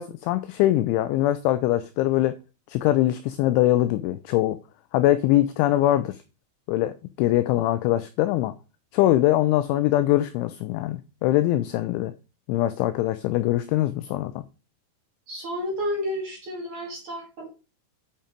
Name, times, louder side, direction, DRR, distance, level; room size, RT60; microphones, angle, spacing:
voice 1, 0.0-2.4 2.7-4.6 4.9-6.2 6.7-6.9 7.2-8.5 8.9-12.1 12.5-14.4, left 14 dB, 90° left, 2.6 m, -22 dB
voice 2, 15.3-17.5, left 1 dB, 45° right, 2.9 m, -31 dB
8.6 x 5.5 x 5.1 m
omnidirectional pair, 6.0 m